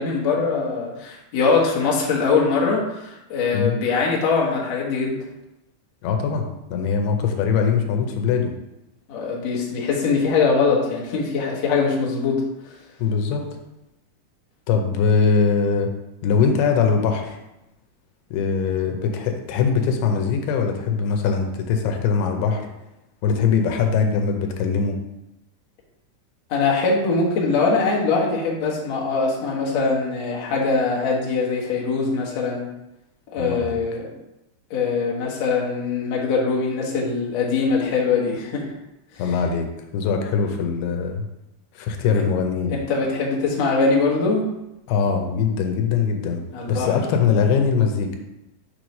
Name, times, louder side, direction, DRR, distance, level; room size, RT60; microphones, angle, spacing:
voice 1, 0.0-5.2 9.1-12.4 26.5-32.7 33.3-34.0 34.7-38.7 42.9-44.5 46.5-46.9, left 4 dB, 65° left, -3 dB, 1.7 m, -22 dB
voice 2, 6.0-8.5 13.0-13.4 14.7-15.9 16.2-17.4 18.3-22.7 23.2-25.0 33.4-33.8 39.2-39.7 39.9-41.3 41.7-42.8 44.9-46.4 46.7-48.2, left 6 dB, 85° left, 4 dB, 2.7 m, -21 dB
6.8 x 3.1 x 5.2 m, 0.91 s
omnidirectional pair, 4.5 m